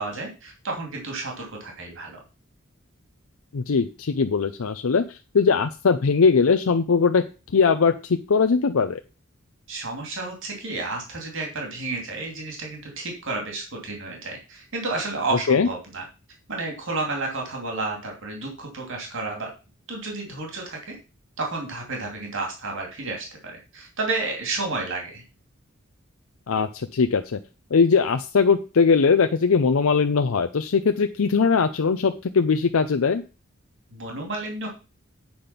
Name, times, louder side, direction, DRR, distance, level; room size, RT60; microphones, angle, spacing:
voice 1, 0.0-2.2 9.7-16.0 16.5-19.5 19.9-20.9 21.4-25.2 33.9-34.7, right 3 dB, 65° right, 1 dB, 2.7 m, -31 dB
voice 2, 3.5-7.3 7.5-9.0 15.5-15.7 26.5-27.4 27.7-33.2, left 5 dB, 80° left, 8 dB, 0.6 m, -20 dB
8.7 x 5.1 x 5.9 m, 0.31 s
head